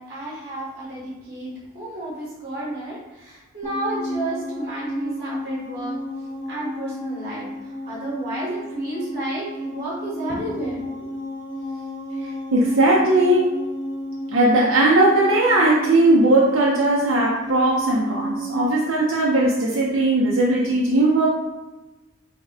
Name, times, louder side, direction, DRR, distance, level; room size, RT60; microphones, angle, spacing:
voice 1, 0.0-6.0 6.5-11.0, right 1 dB, 40° right, -7 dB, 1.1 m, -32 dB
sound 1, 3.6-19.0, equal, 10° right, 0.8 m, -32 dB
voice 2, 12.5-13.5 14.3-21.3, right 2 dB, 80° right, -3 dB, 0.6 m, -18 dB
3.3 x 2.7 x 4.1 m, 1.1 s
head